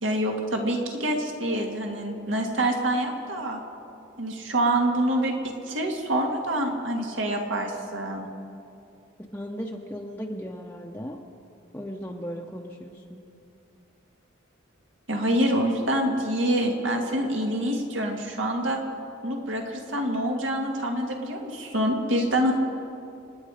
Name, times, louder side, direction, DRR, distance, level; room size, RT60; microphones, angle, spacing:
voice 1, 0.0-3.6 4.2-8.3 15.1-18.8 19.2-22.5, right 1 dB, 75° right, 1 dB, 2.2 m, -26 dB
voice 2, 9.2-11.2 11.7-13.2, equal, 10° left, 0 dB, 0.8 m, -36 dB
29.0 x 9.9 x 5.0 m, 2.7 s
head